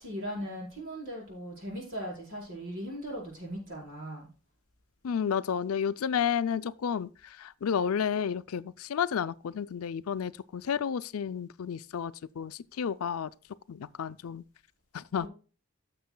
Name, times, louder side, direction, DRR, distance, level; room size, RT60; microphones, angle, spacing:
voice 1, 0.0-4.3 15.2-15.3, equal, 60° right, 5.0 m, -38 dB
voice 2, 5.0-7.1 7.4-13.3 13.7-14.4 14.9-15.3, left 7 dB, 90° left, 0.4 m, -31 dB
16.0 x 6.7 x 2.2 m
head